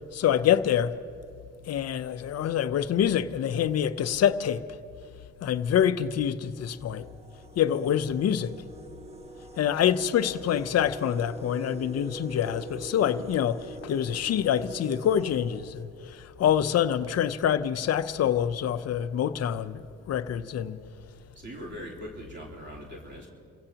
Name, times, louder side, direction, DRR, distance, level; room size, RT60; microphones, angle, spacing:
voice 1, 0.1-0.9 1.6-4.8 5.4-7.1 7.6-8.5 9.6-19.8 20.1-20.8, left 9 dB, 55° left, 0.7 m, -26 dB
sound 1, 5.0-5.2 6.1-6.2 6.6-16.4, right 1 dB, 20° right, 1.3 m, -44 dB
voice 2, 21.3-23.3, equal, 35° right, 3.3 m, -41 dB
27.0 x 16.0 x 2.9 m
cardioid pair, 90°, 30 cm